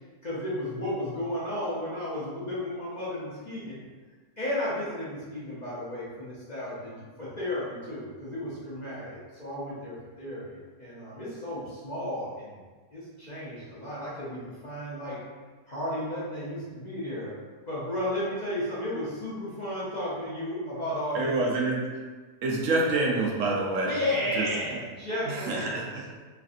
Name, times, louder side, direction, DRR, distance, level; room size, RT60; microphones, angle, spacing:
voice 1, 0.2-3.8 4.4-12.6 12.9-15.2 15.7-17.3 17.7-21.3 23.9-25.9, left 1 dB, 45° left, -9 dB, 0.6 m, -33 dB
voice 2, 21.1-21.8 22.4-24.0 24.3-24.5 25.3-25.9, right 2 dB, 65° right, -2 dB, 0.8 m, -27 dB
3.2 x 2.6 x 2.4 m, 1.4 s
omnidirectional pair, 1.6 m